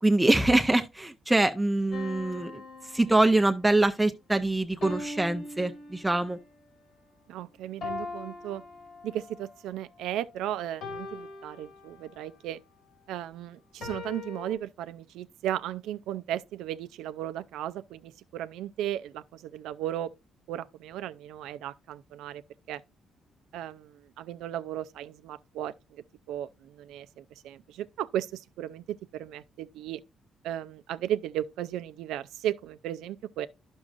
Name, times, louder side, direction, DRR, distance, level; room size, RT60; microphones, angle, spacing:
voice 1, 0.0-2.6 2.9-6.4, right 2 dB, 10° right, 0.5 m, -24 dB
sound 1, 1.9-3.7 4.8-6.4 7.8-9.5 10.8-12.3 13.8-14.6, left 3 dB, 70° left, 2.5 m, -41 dB
voice 2, 7.3-8.6 9.0-12.6 13.1-20.1 20.5-22.4 22.7-22.8 23.5-25.7 26.3-30.0 30.4-33.5, right 11 dB, 90° right, 0.4 m, -35 dB
10.5 x 6.2 x 2.5 m
cardioid pair, 90°, 0 cm